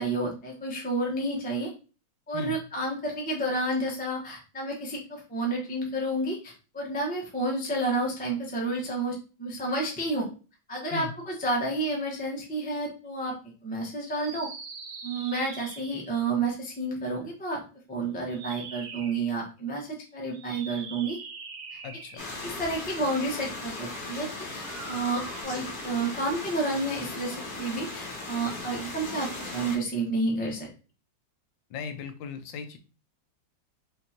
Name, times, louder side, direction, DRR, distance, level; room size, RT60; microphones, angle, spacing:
voice 1, 0.0-1.7 2.3-10.3 10.7-13.3 13.6-14.5 15.0-17.6 17.9-21.2 21.7-21.8 22.4-30.7, right 2 dB, 10° left, -1 dB, 0.6 m, -30 dB
sound 1, 14.1-16.2 18.2-19.3 20.3-22.5 24.5-25.4, right 5 dB, 60° right, 0.9 m, -42 dB
voice 2, 21.8-22.3 31.7-32.8, left 5 dB, 80° left, 7 dB, 1.3 m, -37 dB
sound 2, 22.2-29.8, left 2 dB, 35° left, 0.9 m, -38 dB
5.2 x 2.8 x 2.8 m, 0.34 s
omnidirectional pair, 2.1 m